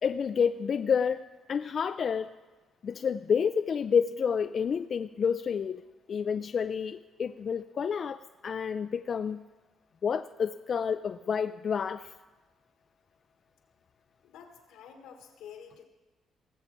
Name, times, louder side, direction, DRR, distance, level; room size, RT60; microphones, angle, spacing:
voice 1, 0.0-1.2 1.5-2.3 2.8-5.8 6.1-9.4 10.0-12.1, left 6 dB, 50° left, 10 dB, 0.3 m, -29 dB
voice 2, 14.2-15.9, left 8 dB, 90° left, 5 dB, 1.5 m, -49 dB
18.5 x 7.0 x 4.5 m, 1.2 s
cardioid pair, 80°, 0 cm